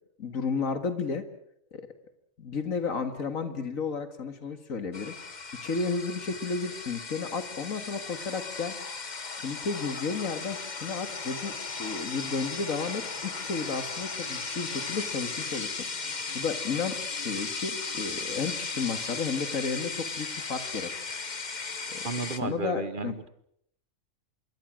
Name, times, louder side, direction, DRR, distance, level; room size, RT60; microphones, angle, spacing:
voice 1, 0.2-1.3 1.7-1.9 2.4-5.1 5.6-8.7 9.4-11.5 11.8-17.0 17.2-20.9 21.9-22.1 22.4-23.1, left 5 dB, 85° left, 9 dB, 2.3 m, -32 dB
sound 1, 4.9-22.4, left 4 dB, 35° left, 1.3 m, -36 dB
voice 2, 22.0-23.3, right 3 dB, 40° right, 13 dB, 1.2 m, -33 dB
26.5 x 22.5 x 6.4 m, 0.72 s
omnidirectional pair, 1.4 m